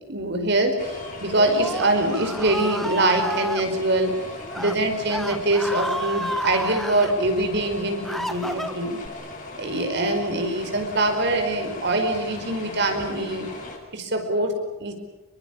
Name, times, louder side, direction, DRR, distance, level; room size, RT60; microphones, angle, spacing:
voice 1, 0.1-4.2 4.6-9.0 9.6-13.5 13.9-14.9, right 2 dB, 55° right, 5 dB, 5.1 m, -24 dB
sound 1, 0.8-13.8, left 2 dB, 40° left, 6.8 m, -38 dB
Screaming, 1.2-3.6 4.4-4.7 5.1-7.1 7.7-9.1, equal, ahead, 1.5 m, -31 dB
27.5 x 23.0 x 8.7 m, 0.95 s
head